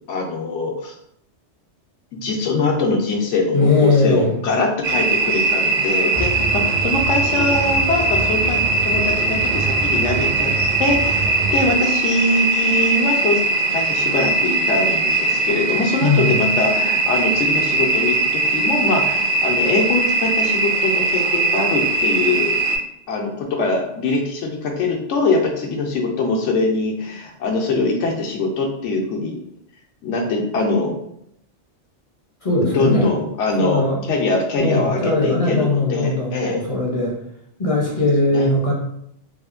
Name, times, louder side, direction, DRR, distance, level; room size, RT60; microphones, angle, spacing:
voice 1, 0.1-0.9 2.1-10.5 10.8-22.6 23.1-29.4 30.0-30.9 32.6-33.8 34.1-36.6 38.3-38.5, left 3 dB, 85° left, 1 dB, 1.0 m, -22 dB
voice 2, 3.5-4.4 16.0-16.4 32.4-33.1 33.6-34.0 34.6-37.2 37.6-38.7, left 2 dB, 45° left, -4 dB, 0.5 m, -19 dB
sound 1, 4.8-22.8, right 3 dB, 55° right, 0.7 m, -20 dB
sound 2, 6.1-11.8, right 4 dB, 85° right, 0.9 m, -27 dB
3.2 x 2.1 x 2.4 m, 0.73 s
omnidirectional pair, 1.2 m